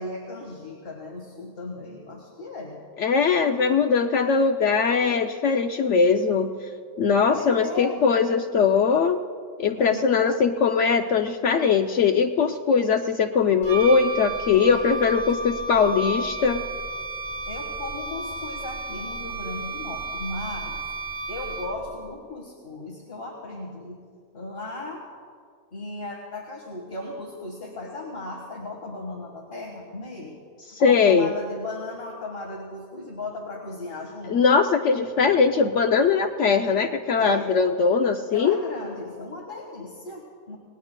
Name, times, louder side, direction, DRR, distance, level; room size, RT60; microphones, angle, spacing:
voice 1, 0.0-2.8 7.3-8.0 9.8-10.4 17.5-20.8 21.3-24.0 24.3-25.1 25.7-30.4 30.7-34.4 37.2-37.6 38.3-40.6, left 2 dB, 40° left, -1 dB, 1.8 m, -36 dB
voice 2, 3.0-6.5 7.0-9.2 9.6-16.6 30.7-31.3 34.3-38.6, left 5 dB, 65° left, 6 dB, 0.8 m, -21 dB
Wind instrument woodwind instrument, 13.6-22.0, right 2 dB, 30° right, 0.8 m, -33 dB
27.5 x 19.5 x 2.2 m, 2.1 s
omnidirectional pair, 1.5 m